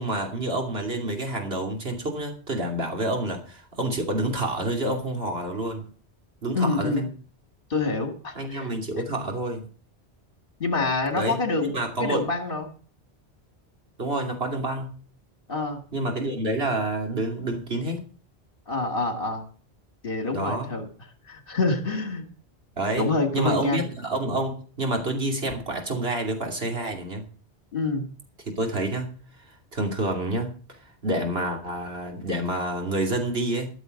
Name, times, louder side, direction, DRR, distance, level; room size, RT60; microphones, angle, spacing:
voice 1, 0.0-5.9 6.4-7.0 8.3-9.7 11.2-12.3 14.0-14.9 15.9-18.0 20.3-20.7 22.8-23.1 23.3-27.2 28.6-29.1 29.5-30.5 31.0-33.7, right 1 dB, 65° right, 3 dB, 3.1 m, -28 dB
voice 2, 6.5-7.1 7.7-8.7 10.6-11.7 12.0-12.7 15.5-15.8 18.7-19.4 20.0-20.8 21.3-22.2 23.0-23.9 27.7-28.1, left 3 dB, 55° left, 6 dB, 2.4 m, -26 dB
14.0 x 7.2 x 6.5 m, 0.40 s
omnidirectional pair, 1.1 m